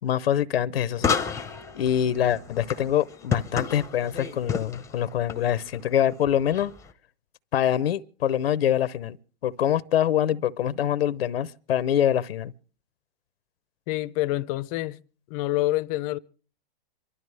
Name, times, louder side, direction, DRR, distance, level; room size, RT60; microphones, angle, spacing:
voice 1, 0.0-1.4 1.7-6.7 7.5-9.2 9.4-12.5, left 10 dB, 80° left, 0.8 m, -25 dB
sound 1, 1.0-6.9, left 6 dB, 10° left, 0.9 m, -32 dB
voice 2, 13.9-15.0 15.3-16.2, left 16 dB, 40° left, 0.7 m, -27 dB
25.5 x 12.5 x 3.3 m
hypercardioid pair, 130°, 30 cm